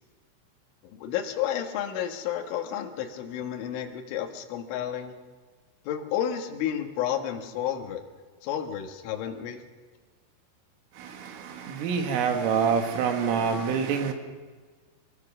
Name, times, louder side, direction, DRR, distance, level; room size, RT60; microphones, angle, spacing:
voice 1, 0.9-5.1 5.9-8.0 8.4-9.6, left 10 dB, 75° left, 4 dB, 3.9 m, -31 dB
voice 2, 11.0-14.1, right 6 dB, 80° right, 5 dB, 4.1 m, -26 dB
25.5 x 21.0 x 6.1 m, 1.5 s
omnidirectional pair, 5.8 m